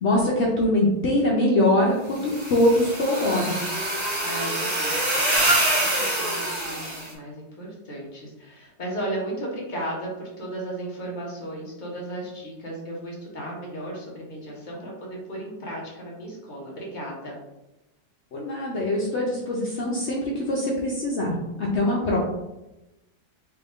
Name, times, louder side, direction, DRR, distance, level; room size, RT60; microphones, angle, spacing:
voice 1, 0.0-3.5 18.3-22.2, left 1 dB, 90° left, -3 dB, 0.6 m, -23 dB
sound 1, 2.2-7.1, right 1 dB, 35° right, 0.6 m, -25 dB
voice 2, 4.2-17.3, right 1 dB, 35° left, -3 dB, 0.8 m, -35 dB
4.3 x 2.5 x 3.6 m, 0.97 s
omnidirectional pair, 2.0 m